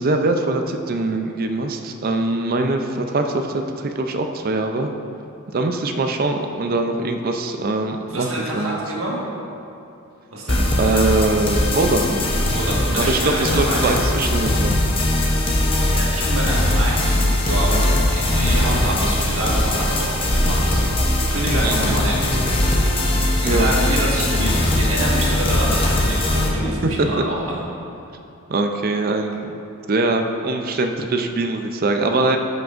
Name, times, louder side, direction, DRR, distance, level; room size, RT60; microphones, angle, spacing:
voice 1, 0.0-4.9 5.5-8.3 8.5-8.8 10.8-12.3 13.0-14.8 17.7-17.9 21.6-22.0 23.4-23.7 26.8-27.1 28.5-29.6 29.9-32.4, right 2 dB, 40° right, 5 dB, 0.4 m, -22 dB
voice 2, 8.1-9.2 10.3-11.0 12.5-14.0 15.9-17.8 18.1-20.9 21.3-22.8 23.5-27.6, right 1 dB, 65° right, -4 dB, 1.5 m, -27 dB
sound 1, 10.5-26.5, left 1 dB, 25° left, 0.7 m, -20 dB
12.0 x 6.0 x 2.5 m, 2.7 s
head